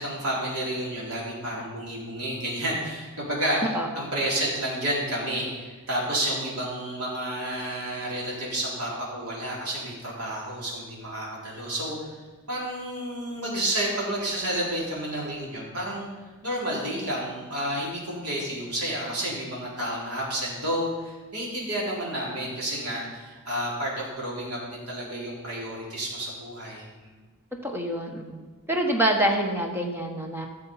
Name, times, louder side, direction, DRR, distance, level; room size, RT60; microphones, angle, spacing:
voice 1, 0.0-3.6 3.9-12.0 12.5-16.1 16.4-27.1, right 1 dB, 80° right, -4 dB, 4.0 m, -30 dB
voice 2, 3.6-4.1 27.6-28.4 28.7-30.5, right 1 dB, 10° right, 2 dB, 1.2 m, -26 dB
14.0 x 7.1 x 5.6 m, 1.3 s
head